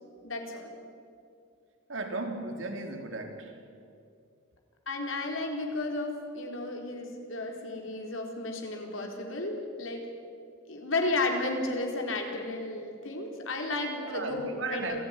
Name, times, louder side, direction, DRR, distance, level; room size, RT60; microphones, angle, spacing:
voice 1, 0.2-0.7 4.9-10.1 10.7-15.0, left 2 dB, 80° left, 2 dB, 4.1 m, -33 dB
voice 2, 1.9-3.6 14.0-15.0, right 2 dB, 75° right, 3 dB, 3.4 m, -35 dB
27.5 x 15.5 x 9.7 m, 2.4 s
head